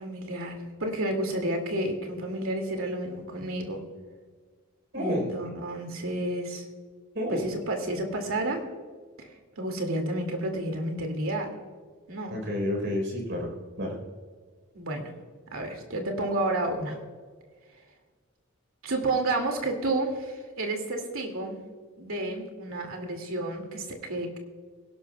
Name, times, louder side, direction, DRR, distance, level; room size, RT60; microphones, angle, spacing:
voice 1, 0.0-3.8 4.9-6.7 7.3-8.6 9.2-11.5 12.1-12.3 14.7-15.1 15.5-17.0 18.8-21.6 22.0-24.4, right 1 dB, 70° right, 3 dB, 2.3 m, -31 dB
voice 2, 4.9-5.3 7.1-7.5 12.3-13.5 13.8-13.9, equal, 50° right, 1 dB, 4.0 m, -29 dB
23.0 x 11.5 x 2.3 m, 1.5 s
head